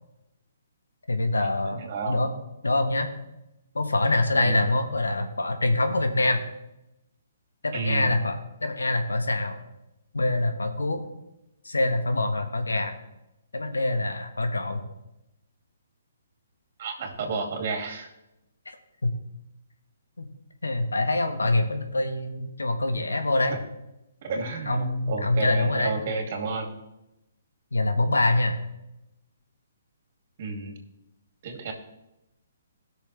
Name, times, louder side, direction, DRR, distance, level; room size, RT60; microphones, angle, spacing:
voice 1, 1.1-2.3 2.6-3.1 3.7-6.4 7.6-9.6 10.1-11.0 11.6-13.0 13.5-14.8 18.6-18.8 19.0-19.1 20.2-20.3 20.6-23.6 24.7-26.0 27.7-28.6, left 2 dB, 85° left, 6 dB, 1.3 m, -25 dB
voice 2, 1.7-2.2 4.3-4.6 7.7-8.1 16.8-18.1 23.5-23.6 24.2-26.8 30.4-30.7 31.4-31.7, right 3 dB, 50° right, 3 dB, 2.5 m, -31 dB
18.5 x 6.4 x 3.4 m, 0.90 s
figure-of-eight pair, 135°, 0 cm